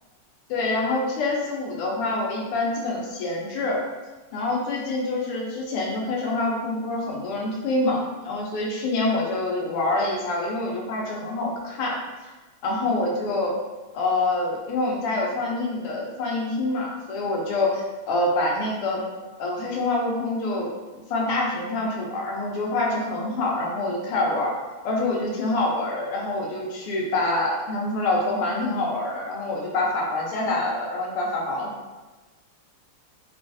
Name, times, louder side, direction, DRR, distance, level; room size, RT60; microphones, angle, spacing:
voice 1, 0.5-3.8 4.3-12.0 12.6-13.5 13.9-19.0 19.4-24.5 24.8-31.7, left 2 dB, 85° left, -1 dB, 1.6 m, -26 dB
3.8 x 2.4 x 2.5 m, 1.2 s
omnidirectional pair, 2.4 m